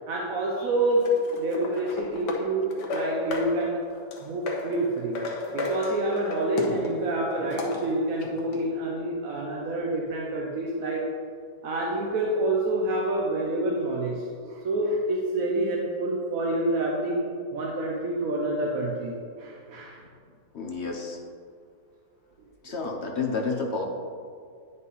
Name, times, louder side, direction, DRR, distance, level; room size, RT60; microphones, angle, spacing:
voice 1, 0.1-3.8 4.2-5.2 5.5-11.1 11.6-17.3 17.5-20.0 22.7-22.8, right 1 dB, 65° right, -1 dB, 1.1 m, -27 dB
sound 1, 0.7-8.6, left 2 dB, 90° left, 1.6 m, -33 dB
voice 2, 20.5-21.2 22.6-23.9, left 4 dB, 50° left, 1 dB, 0.9 m, -30 dB
9.4 x 5.5 x 4.0 m, 2.2 s
omnidirectional pair, 1.8 m